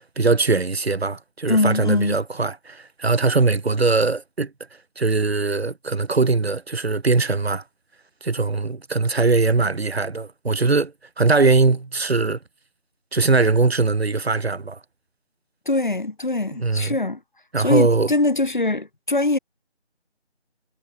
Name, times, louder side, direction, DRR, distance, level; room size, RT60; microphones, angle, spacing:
voice 1, 0.2-4.5 5.0-7.6 8.2-12.4 13.1-14.8 16.6-17.0 17.5-18.1, right 3 dB, 65° right, 1.1 m, -21 dB
voice 2, 1.5-2.2 15.7-17.2 17.6-19.4, left 2 dB, 45° left, 0.6 m, -22 dB
figure-of-eight pair, 165°, 35 cm